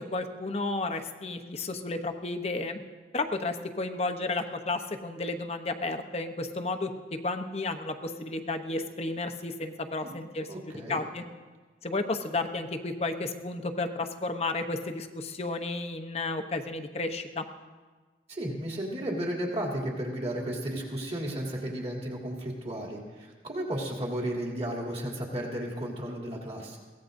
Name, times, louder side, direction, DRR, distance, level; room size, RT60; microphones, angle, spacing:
voice 1, 0.1-2.8 3.1-6.9 7.2-11.2 11.8-17.4, left 2 dB, 35° left, 6 dB, 0.8 m, -32 dB
voice 2, 10.5-11.0 18.3-26.8, right 1 dB, 35° right, -2 dB, 2.9 m, -34 dB
22.5 x 17.5 x 2.6 m, 1.3 s
head